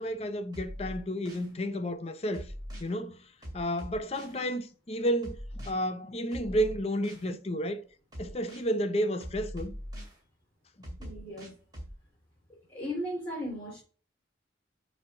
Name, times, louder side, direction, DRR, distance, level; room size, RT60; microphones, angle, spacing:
voice 1, 0.0-2.5 2.8-3.2 3.5-7.8 8.2-9.7 11.4-11.5, equal, 35° left, 0.7 m, -31 dB
sound 1, 0.5-1.5 2.3-2.9 3.4-4.4 5.2-5.7 6.3-7.3 8.1-8.7 9.2-10.2 10.8-11.9, equal, 20° right, 2.2 m, -42 dB
voice 2, 11.0-11.5 12.7-13.8, equal, 10° left, 3.7 m, -36 dB
7.1 x 3.4 x 5.6 m
head